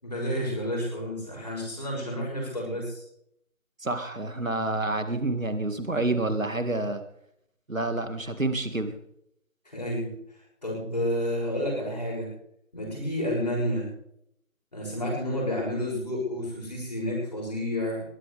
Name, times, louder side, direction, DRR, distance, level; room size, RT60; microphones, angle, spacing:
voice 1, 0.0-3.0 9.7-10.1 10.6-12.3 12.7-13.9 14.7-18.0, left 1 dB, 30° left, -4 dB, 6.9 m, -30 dB
voice 2, 3.8-7.0 7.7-9.0, right 2 dB, 65° right, 8 dB, 2.1 m, -28 dB
21.5 x 16.5 x 3.4 m, 0.73 s
figure-of-eight pair, 175°, 42 cm